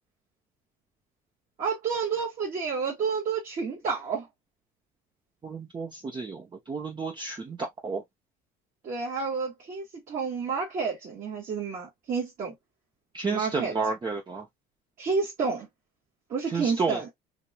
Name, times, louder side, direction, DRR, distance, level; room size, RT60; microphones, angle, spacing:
voice 1, 1.6-4.3 8.8-12.5 13.3-13.8 15.0-15.7 16.3-17.1, right 5 dB, 45° right, 2.3 m, -30 dB
voice 2, 5.4-8.0 13.1-14.5 16.5-17.0, right 4 dB, 25° right, 1.0 m, -31 dB
5.1 x 2.8 x 2.4 m
cardioid pair, 105°, 18 cm